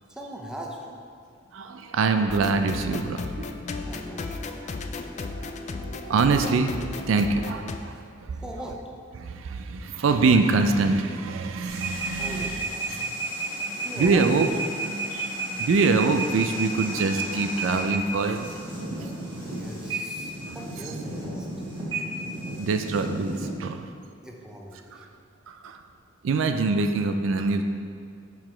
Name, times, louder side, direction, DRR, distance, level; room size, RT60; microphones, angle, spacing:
voice 1, 0.1-1.0 3.8-4.7 8.3-8.8 12.2-12.9 13.8-14.3 19.5-21.5 24.2-25.1, equal, 5° right, -1 dB, 0.6 m, -39 dB
voice 2, 1.5-3.6 5.4-6.8 7.1-8.4 9.2-13.1 14.0-14.5 15.1-15.3 15.6-18.5 20.4-20.6 22.6-23.9 25.5-25.8 26.2-27.6, right 4 dB, 70° right, 7 dB, 0.4 m, -24 dB
sound 1, 2.3-7.8, left 3 dB, 35° left, 0.3 m, -35 dB
sound 2, 11.7-23.5, right 2 dB, 25° right, 1.4 m, -32 dB
5.7 x 4.8 x 4.4 m, 2.2 s
head